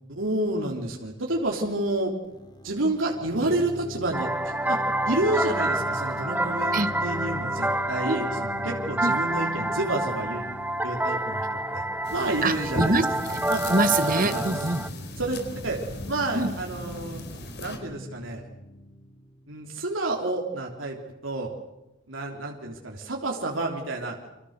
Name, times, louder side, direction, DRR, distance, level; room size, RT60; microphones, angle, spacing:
voice 1, 0.1-2.1 2.6-4.8 5.1-10.5 10.8-11.5 11.7-11.8 12.1-13.0 13.5-13.7 14.2-14.5 15.2-15.8 16.1-17.2 17.6-18.5 19.5-21.0 21.2-21.5 22.1-24.3, right 2 dB, 85° right, 0 dB, 3.6 m, -29 dB
sound 1, 2.3-19.8, left 1 dB, 20° left, 3.8 m, -41 dB
sound 2, 4.1-14.9, right 1 dB, 10° right, 1.1 m, -28 dB
sound 3, 12.0-17.8, left 1 dB, 60° left, 4.4 m, -37 dB
voice 2, 12.4-13.4 13.7-14.8 16.3-16.5, right 2 dB, 45° right, 11 dB, 1.8 m, -25 dB
29.0 x 26.0 x 6.7 m, 0.97 s
head